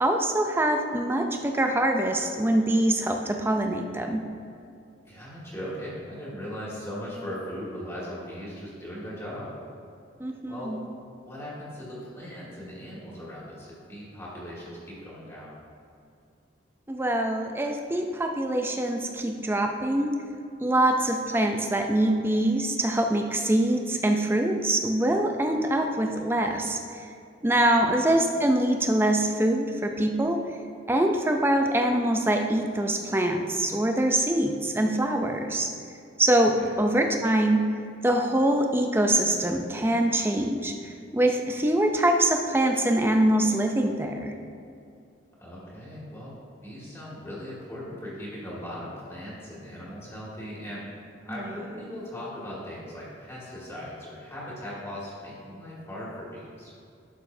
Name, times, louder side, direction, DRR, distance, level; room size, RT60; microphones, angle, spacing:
voice 1, 0.0-4.2 10.2-10.9 16.9-20.1 20.6-27.1 27.4-30.4 30.9-35.7 36.2-37.6 38.0-44.3 51.3-51.4, right 1 dB, 10° right, 4 dB, 0.5 m, -24 dB
voice 2, 5.0-9.5 10.5-10.7 11.3-15.6 27.7-28.2 36.6-36.7 45.4-46.3 46.6-50.8 51.3-56.7, equal, 15° left, -7 dB, 2.0 m, -39 dB
11.5 x 6.7 x 2.7 m, 2.5 s
head